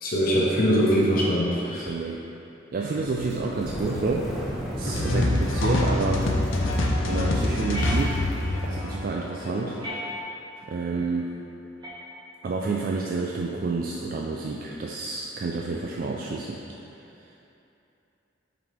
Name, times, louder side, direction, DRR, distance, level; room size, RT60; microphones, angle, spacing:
voice 1, 0.0-1.9 5.6-5.7, equal, 50° left, -5 dB, 1.0 m, -22 dB
voice 2, 1.6-2.2 2.7-4.3 4.8-6.3 7.0-8.2 8.7-9.8 10.7-11.3 12.4-16.6, right 3 dB, 45° right, -2 dB, 0.3 m, -29 dB
sound 1, 3.0-8.7, equal, ahead, 1.1 m, -35 dB
sound 2, 4.9-9.9, left 1 dB, 85° left, 0.7 m, -25 dB
sound 3, 7.7-8.6 9.8-10.6 11.8-12.6, left 1 dB, 25° right, 1.1 m, -37 dB
7.3 x 4.1 x 3.4 m, 2.8 s
head